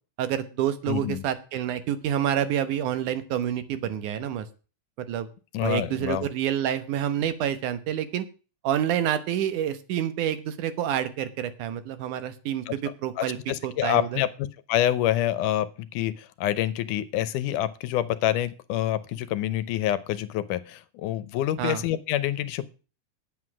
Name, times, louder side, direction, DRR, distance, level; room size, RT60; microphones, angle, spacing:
voice 1, 0.2-4.5 5.0-5.3 5.6-8.3 8.6-13.4 13.6-14.2 21.6-21.8, right 10 dB, 80° right, 11 dB, 2.5 m, -28 dB
voice 2, 0.9-1.2 5.5-6.3 12.7-12.8 13.2-22.7, left 12 dB, 85° left, 15 dB, 2.3 m, -27 dB
9.6 x 8.3 x 6.1 m, 0.34 s
omnidirectional pair, 3.5 m